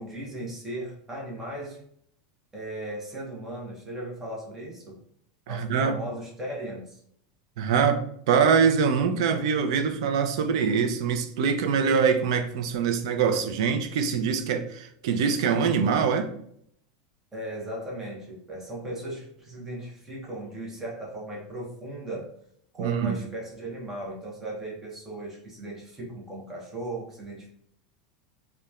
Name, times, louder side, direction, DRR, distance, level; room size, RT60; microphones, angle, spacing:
voice 1, 0.0-1.8 2.5-5.0 5.5-7.0 17.3-22.3 22.8-27.5, right 1 dB, 10° right, -3 dB, 0.7 m, -37 dB
voice 2, 5.5-6.0 7.6-16.3 22.8-23.2, right 6 dB, 65° right, 7 dB, 0.4 m, -24 dB
2.8 x 2.1 x 2.3 m, 0.67 s
supercardioid pair, 170°, 3 cm